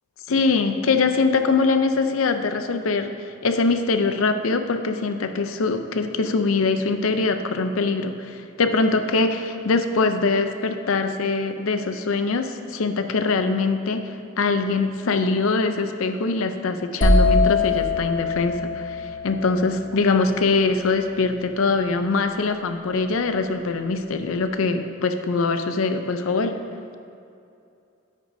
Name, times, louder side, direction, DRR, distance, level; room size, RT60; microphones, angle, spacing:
voice 1, 0.3-3.1 3.4-26.6, left 3 dB, 80° left, 8 dB, 0.5 m, -23 dB
sound 1, 17.0-20.8, left 2 dB, 40° left, 1.1 m, -22 dB
9.7 x 9.3 x 2.7 m, 2.6 s
head